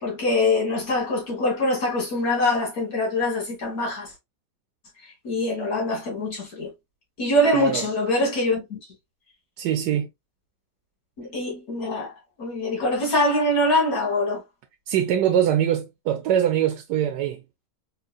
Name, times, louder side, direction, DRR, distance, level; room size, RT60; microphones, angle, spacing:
voice 1, 0.0-4.1 5.2-6.7 7.2-8.8 11.2-14.4, left 1 dB, 60° left, 1.9 m, -24 dB
voice 2, 7.5-7.8 9.6-10.1 14.9-17.4, right 10 dB, 90° right, 1.2 m, -23 dB
3.9 x 2.9 x 2.3 m
omnidirectional pair, 1.8 m